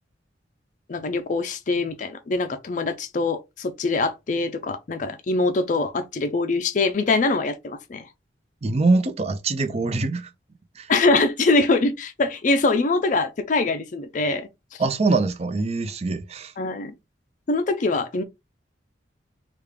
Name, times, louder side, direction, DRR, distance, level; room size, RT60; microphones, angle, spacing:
voice 1, 0.9-8.1 10.9-14.8 16.6-16.9 17.5-18.2, left 3 dB, 45° left, 0.4 m, -23 dB
voice 2, 8.6-10.3 10.8-10.9 14.8-16.5, right 3 dB, 35° right, 0.5 m, -23 dB
3.5 x 2.4 x 3.3 m
head